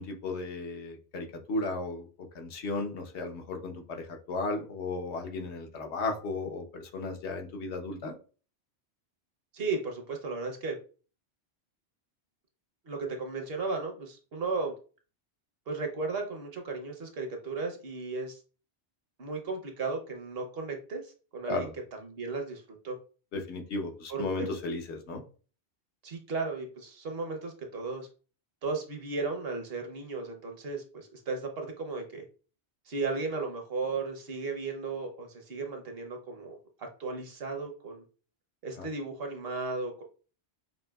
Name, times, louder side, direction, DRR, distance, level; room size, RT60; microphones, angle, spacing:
voice 1, 0.0-2.1 2.3-8.1 21.5-21.7 23.3-25.2 38.8-38.9, left 3 dB, 80° left, 3 dB, 1.0 m, -35 dB
voice 2, 9.5-10.8 12.9-14.7 15.7-18.4 19.2-21.7 22.0-23.0 24.1-24.5 26.0-28.1 28.6-32.2 32.9-38.0 38.6-40.0, right 3 dB, 60° right, 4 dB, 1.0 m, -35 dB
5.4 x 2.7 x 2.3 m, 0.37 s
omnidirectional pair, 1.1 m